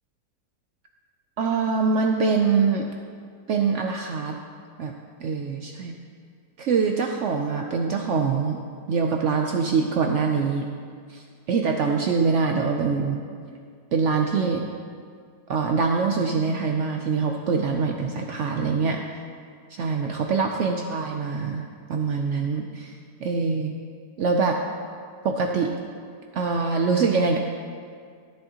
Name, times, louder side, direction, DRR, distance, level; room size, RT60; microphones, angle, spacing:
voice 1, 1.4-2.9 3.5-4.4 4.8-4.9 5.2-6.0 6.6-8.6 8.9-10.7 11.1-13.2 13.9-14.7 15.5-19.0 19.8-23.0 23.2-23.8 24.2-24.6 25.2-25.7 26.3-27.4, right 5 dB, 75° right, 3 dB, 0.6 m, -24 dB
13.0 x 7.5 x 2.9 m, 2.1 s
omnidirectional pair, 1.8 m